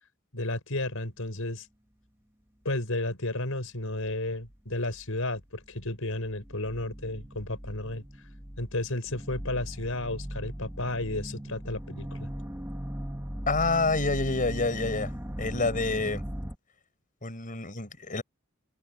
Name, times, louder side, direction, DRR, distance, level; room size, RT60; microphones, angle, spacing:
voice 1, 0.3-1.7 2.6-8.0 8.6-12.3, left 2 dB, 75° left, 6.4 m, -32 dB
sound 1, 4.1-4.2 4.5-5.4 5.6-16.5, equal, 10° right, 2.2 m, -38 dB
voice 2, 13.5-15.1 15.4-16.2 17.2-18.2, left 3 dB, 40° left, 6.3 m, -28 dB
head